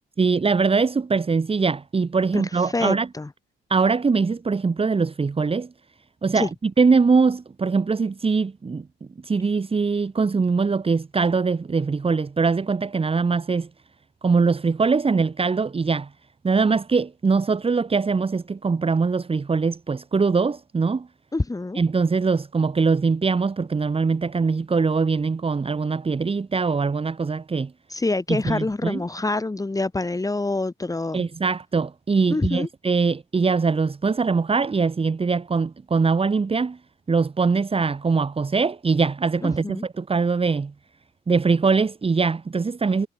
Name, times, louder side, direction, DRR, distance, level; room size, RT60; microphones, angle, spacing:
voice 1, 0.2-3.1 3.7-5.7 6.2-8.9 9.2-13.7 14.2-16.1 16.4-21.1 21.8-27.7 28.3-29.0 31.1-36.8 37.1-40.7 41.3-43.1, right 4 dB, 30° right, 2.0 m, -22 dB
voice 2, 2.3-3.3 6.3-6.5 21.3-21.8 27.9-31.2 32.3-32.7 39.4-39.8, left 2 dB, 15° left, 3.4 m, -26 dB
cardioid pair, 90°, 20 cm